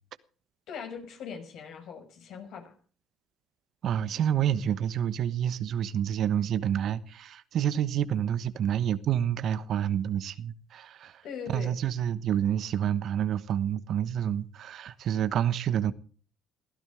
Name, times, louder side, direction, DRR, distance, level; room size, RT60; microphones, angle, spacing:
voice 1, 0.7-2.7 11.2-11.8, left 6 dB, 70° left, 6.3 m, -40 dB
voice 2, 3.8-11.2 11.5-15.9, right 9 dB, 60° right, 1.1 m, -28 dB
22.0 x 15.0 x 3.6 m
supercardioid pair, 65°, 0 cm